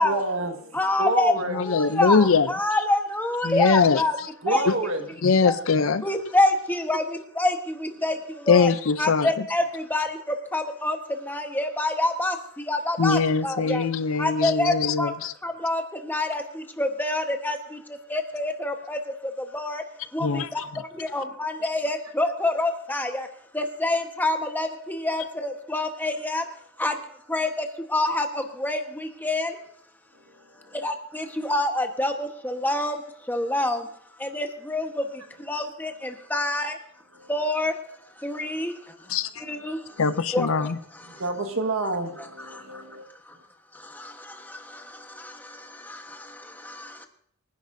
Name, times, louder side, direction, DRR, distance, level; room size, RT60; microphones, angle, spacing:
voice 1, 0.0-0.7 1.0-1.6 4.4-5.0 41.1-43.0, right 2 dB, 70° right, 1.6 m, -28 dB
voice 2, 0.7-4.2 4.5-4.7 5.4-5.5 6.0-8.2 8.5-8.7 9.0-13.8 14.2-15.1 15.4-17.8 18.1-19.0 19.5-19.8 20.1-23.3 23.5-26.4 26.8-27.0 27.3-29.6 30.7-33.0 33.3-33.8 34.2-35.0 35.5-36.8 37.3-37.7 38.2-38.7 39.4-39.8 40.3-40.7 42.2-42.6 44.0-44.8 45.2-45.3 45.8-46.2 46.6-47.1, left 2 dB, 10° left, 1.2 m, -27 dB
voice 3, 1.5-2.5 3.4-4.0 4.7-4.8 5.2-6.0 8.5-9.4 13.0-15.3 20.2-20.8 39.1-39.3 40.0-40.8, left 5 dB, 65° left, 0.5 m, -22 dB
24.5 x 10.5 x 2.7 m
head